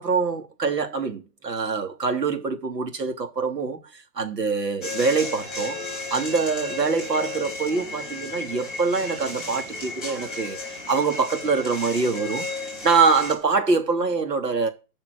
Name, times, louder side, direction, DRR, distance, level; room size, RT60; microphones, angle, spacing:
voice 1, 0.0-5.8 6.1-10.6 10.9-12.5 12.8-14.7, right 4 dB, 90° right, 3.2 m, -24 dB
sound 1, 4.8-13.3, left 2 dB, ahead, 4.0 m, -34 dB
13.5 x 5.8 x 6.4 m
hypercardioid pair, 175°, 48 cm